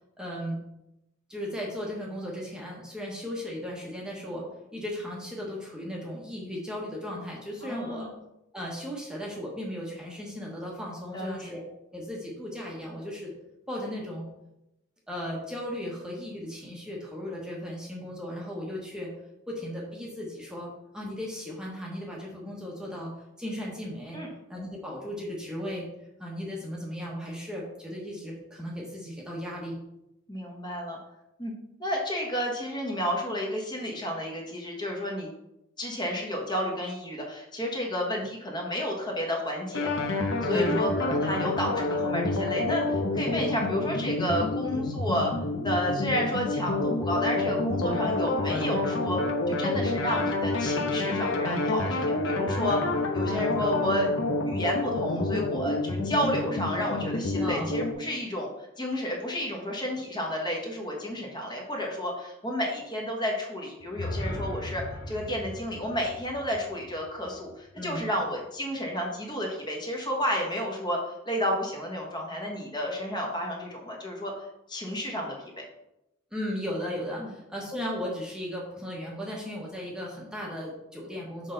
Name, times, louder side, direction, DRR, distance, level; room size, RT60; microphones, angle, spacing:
voice 1, 0.2-0.6 1.3-8.1 8.5-11.6 11.9-13.3 13.7-14.3 15.1-19.1 19.5-20.7 20.9-24.2 24.5-25.9 26.2-29.8 40.5-40.8 57.4-57.7 67.8-68.1 76.3-81.5, equal, 5° right, -3 dB, 1.1 m, -36 dB
voice 2, 7.6-8.1 11.1-11.3 24.1-24.3 30.3-31.0 31.4-31.5 31.8-35.3 35.8-39.9 40.4-45.3 45.6-49.2 49.5-52.8 53.1-54.1 54.5-58.5 58.8-71.0 71.2-74.3 74.7-75.6 77.2-77.3, equal, 20° left, -1 dB, 1.3 m, -31 dB
sound 1, 39.7-57.9, left 2 dB, 65° left, 0.9 m, -28 dB
sound 2, 63.8-67.9, left 1 dB, 85° left, 2.6 m, -38 dB
6.2 x 5.6 x 3.9 m, 0.87 s
head